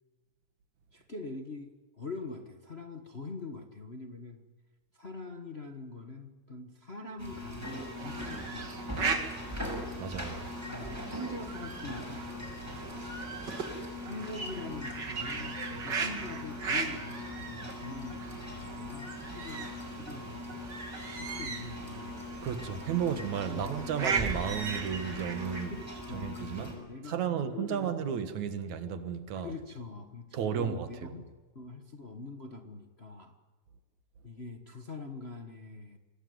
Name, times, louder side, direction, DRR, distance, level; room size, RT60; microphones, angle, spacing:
voice 1, 0.9-4.4 4.9-9.2 10.7-12.9 14.0-20.5 21.2-22.2 23.5-23.9 25.6-27.9 29.3-31.3 31.5-33.3 34.2-36.0, left 3 dB, 55° left, 0.7 m, -43 dB
sound 1, 7.2-26.7, left 1 dB, 5° right, 6.7 m, -41 dB
sound 2, 8.0-25.7, right 4 dB, 35° right, 2.6 m, -38 dB
voice 2, 10.0-10.5 22.4-25.7 26.1-26.7 27.1-29.5 30.3-31.1, right 8 dB, 65° right, 2.8 m, -33 dB
26.5 x 19.0 x 9.5 m
omnidirectional pair, 3.6 m